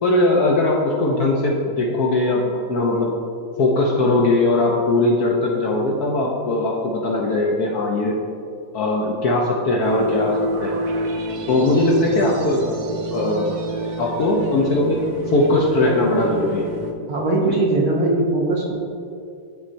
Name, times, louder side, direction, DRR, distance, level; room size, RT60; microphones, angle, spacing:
voice 1, 0.0-3.1 3.6-8.2 8.7-10.8 11.5-12.7 13.1-13.6 14.0-15.0 15.3-16.7, left 2 dB, 65° left, -2 dB, 1.0 m, -20 dB
sound 1, 9.8-16.9, right 2 dB, 90° right, 1.4 m, -27 dB
voice 2, 17.1-18.7, right 2 dB, 55° right, -3 dB, 1.3 m, -20 dB
11.0 x 4.2 x 2.6 m, 2.4 s
omnidirectional pair, 2.1 m